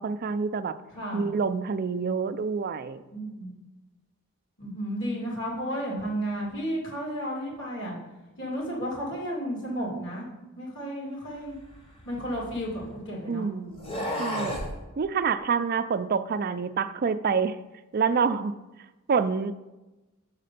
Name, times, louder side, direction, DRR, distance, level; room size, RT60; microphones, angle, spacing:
voice 1, 0.0-0.8 1.1-3.0 13.3-14.6 15.0-17.6 17.9-18.5 19.1-19.5, right 5 dB, 40° right, 11 dB, 0.3 m, -27 dB
voice 2, 0.9-1.3 3.1-3.6 4.6-7.9 8.4-10.3 10.6-11.6 12.0-13.5, equal, 55° left, -3 dB, 2.7 m, -33 dB
sound 1, 11.5-13.0 13.7-14.7, left 1 dB, 25° left, 1.1 m, -34 dB
6.6 x 4.2 x 6.6 m, 1.1 s
head